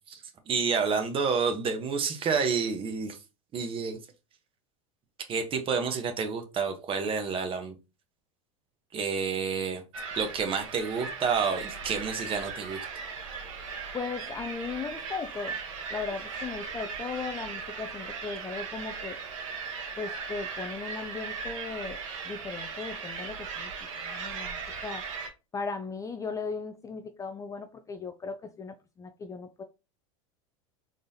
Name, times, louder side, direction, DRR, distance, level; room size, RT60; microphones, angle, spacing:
voice 1, 0.5-3.2 3.5-4.0 5.3-7.7 8.9-9.8 10.2-12.8, right 5 dB, 30° right, 1.0 m, -29 dB
sound 1, 9.9-25.3, right 5 dB, 75° right, 1.3 m, -38 dB
voice 2, 13.9-15.6 15.9-19.2 20.0-23.7 24.0-25.0 25.5-29.6, left 5 dB, 20° left, 0.4 m, -37 dB
3.9 x 3.3 x 2.7 m
hypercardioid pair, 100°, 17 cm